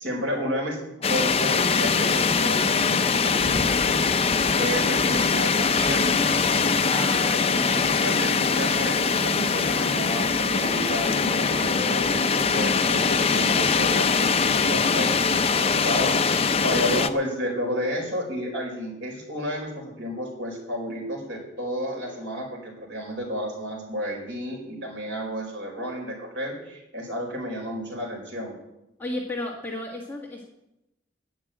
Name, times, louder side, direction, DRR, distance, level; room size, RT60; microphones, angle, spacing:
voice 1, 0.0-4.0 4.5-6.4 6.8-28.5, equal, 75° right, 1 dB, 4.5 m, -32 dB
sound 1, 1.0-17.1, left 5 dB, 30° left, 0.6 m, -22 dB
voice 2, 29.0-30.4, left 1 dB, 10° left, -2 dB, 1.7 m, -32 dB
10.0 x 10.0 x 8.9 m, 0.89 s
head